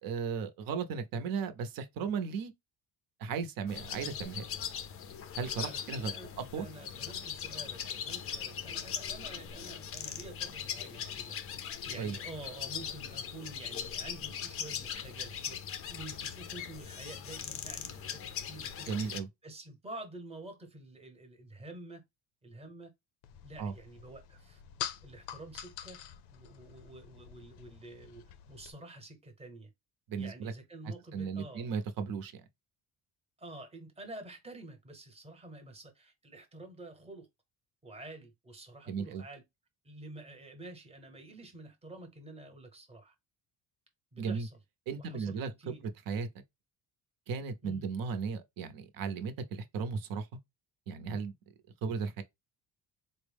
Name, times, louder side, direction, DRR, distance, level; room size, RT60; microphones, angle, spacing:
voice 1, 0.0-2.5 3.2-4.4 5.4-6.1 6.4-6.7 12.0-12.2 18.9-19.3 23.6-23.7 30.1-30.5 30.8-32.4 38.9-39.2 44.2-44.5 44.9-45.7 46.1-46.3 47.3-50.3 50.9-51.3 51.8-52.2, right 5 dB, 60° right, 0.7 m, -35 dB
sound 1, 3.7-19.2, left 8 dB, 35° left, 0.4 m, -40 dB
voice 2, 5.6-18.9 19.4-22.0 22.4-22.9 23.4-24.6 25.0-26.0 26.3-29.7 30.2-31.7 33.4-37.3 37.8-39.4 39.8-43.1 44.1-44.6 45.0-45.8 47.6-47.9, right 2 dB, 15° right, 0.9 m, -49 dB
sound 2, 23.2-28.7, left 10 dB, 85° left, 0.6 m, -46 dB
4.1 x 2.1 x 3.4 m
cardioid pair, 155°, 39 cm